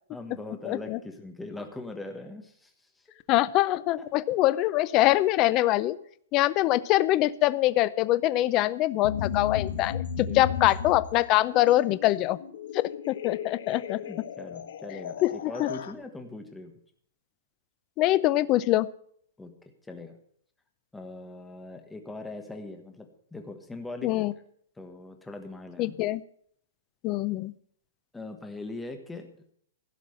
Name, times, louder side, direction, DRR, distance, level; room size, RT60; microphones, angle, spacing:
voice 1, 0.1-2.7 3.0-3.1 4.0-4.1 9.7-9.8 10.3-10.5 14.0-16.7 19.4-19.5 19.8-20.2 20.9-24.3 24.8-26.0 28.1-29.3, left 2 dB, 5° left, 4 dB, 1.4 m, -41 dB
voice 2, 0.6-1.0 3.3-6.0 6.3-12.4 12.7-14.0 15.2-15.7 18.0-18.9 24.0-24.3 25.8-26.2 27.0-27.5, left 16 dB, 20° left, 16 dB, 0.5 m, -24 dB
sound 1, 9.0-15.9, left 8 dB, 55° left, 1.4 m, -35 dB
16.0 x 5.9 x 8.5 m, 0.63 s
hypercardioid pair, 175°, 0 cm